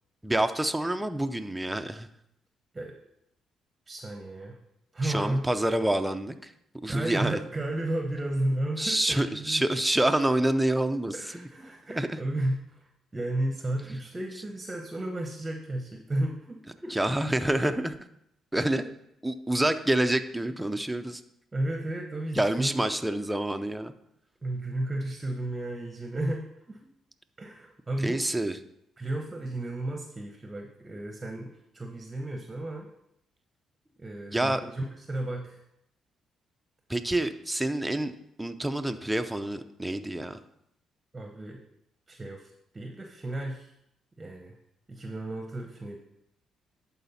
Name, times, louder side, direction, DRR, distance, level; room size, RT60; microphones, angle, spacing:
voice 1, 0.2-2.1 5.0-6.5 6.8-7.4 8.8-11.1 11.9-12.2 16.9-18.0 18.5-18.8 19.2-21.2 22.4-23.9 28.0-28.6 34.3-34.6 36.9-40.4, right 1 dB, 5° right, 7 dB, 0.5 m, -27 dB
voice 2, 3.9-4.6 4.9-5.4 6.8-9.7 11.1-12.9 13.1-17.0 21.5-22.8 24.4-26.8 27.4-28.3 29.0-32.9 34.0-35.6 41.1-41.6 42.1-43.7 44.2-44.6 44.9-46.0, right 1 dB, 20° right, 3 dB, 0.9 m, -33 dB
11.0 x 4.3 x 4.1 m, 0.78 s
cardioid pair, 90°, 0 cm